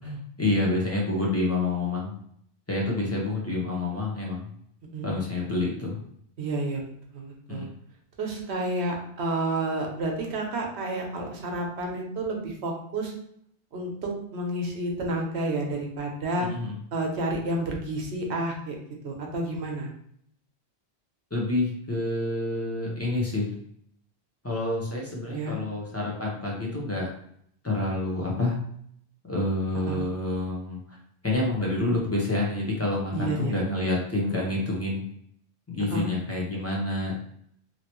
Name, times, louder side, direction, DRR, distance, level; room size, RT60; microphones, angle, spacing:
voice 1, 0.0-2.1 2.7-4.5 5.0-6.0 7.5-7.7 16.4-16.7 21.3-23.5 24.4-27.1 27.6-28.6 29.3-31.0 31.2-35.0 35.7-37.2, left 2 dB, 15° left, -3 dB, 0.8 m, -28 dB
voice 2, 6.4-6.8 7.1-7.7 8.2-13.1 13.7-16.5 16.9-18.8 19.0-19.9 25.3-25.6 29.9-30.0 33.1-33.6 35.9-36.1, right 2 dB, 80° right, 1 dB, 1.0 m, -30 dB
3.0 x 2.7 x 3.0 m, 0.68 s
omnidirectional pair, 1.1 m